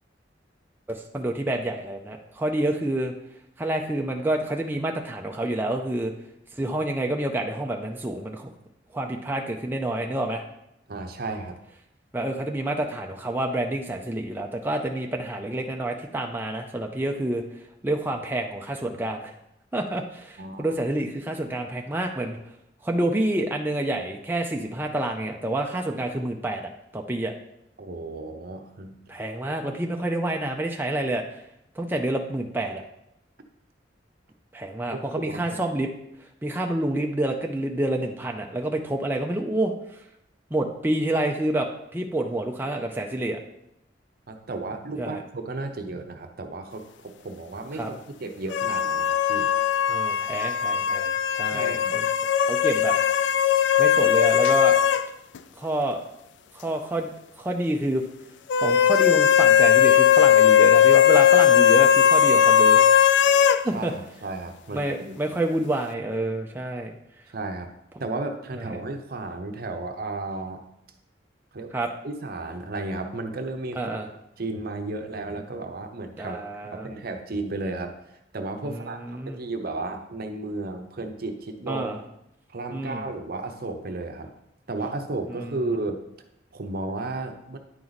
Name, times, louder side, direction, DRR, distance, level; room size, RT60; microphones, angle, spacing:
voice 1, 0.9-3.1 3.6-6.1 6.5-8.5 8.9-10.4 12.1-17.4 17.8-19.3 19.7-22.4 22.8-27.3 29.1-31.4 31.8-32.8 34.5-35.9 36.4-40.0 40.5-43.4 45.0-45.2 47.8-47.9 49.9-52.0 52.5-52.9 53.8-54.8 55.6-56.0 56.5-57.1 57.4-58.0 58.6-62.9 63.6-63.9 64.7-66.9 68.5-68.6 71.7-71.9 73.8-74.1 76.2-76.9 78.7-79.4 81.7-82.0 82.7-83.1 85.3-85.6, right 1 dB, 10° right, 2 dB, 0.5 m, -28 dB
voice 2, 10.9-11.6 20.4-20.7 27.8-29.0 34.9-35.6 44.3-49.5 51.4-52.0 63.7-65.2 67.3-67.7 68.0-70.6 71.5-71.7 72.0-74.0 74.4-76.4 76.7-82.0 82.5-84.3 84.7-86.0 86.5-87.6, right 2 dB, 55° right, 5 dB, 0.8 m, -33 dB
sound 1, 48.5-55.1 55.4-55.5 58.5-63.6, left 9 dB, 70° left, 0.4 m, -18 dB
9.6 x 4.6 x 4.0 m, 0.81 s
head